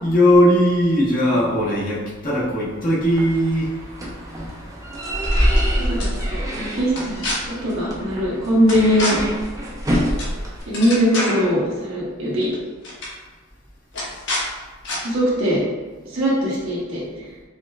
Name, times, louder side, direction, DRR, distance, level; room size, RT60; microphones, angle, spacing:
voice 1, 0.0-3.7, equal, 45° left, -5 dB, 1.0 m, -18 dB
sound 1, 3.0-10.6, equal, 15° right, 0.6 m, -25 dB
sound 2, 5.1-5.6 6.0-6.1 6.9-7.4 8.7-9.1 10.2-10.4 10.6-11.5 12.4-12.6 12.8-13.1 13.9-14.4 14.8-15.0, left 1 dB, 65° left, 1.1 m, -27 dB
voice 2, 5.8-9.2 10.7-12.5 15.0-15.6 16.1-17.0, equal, 75° right, -6 dB, 1.1 m, -21 dB
5.1 x 2.1 x 2.3 m, 1.3 s
head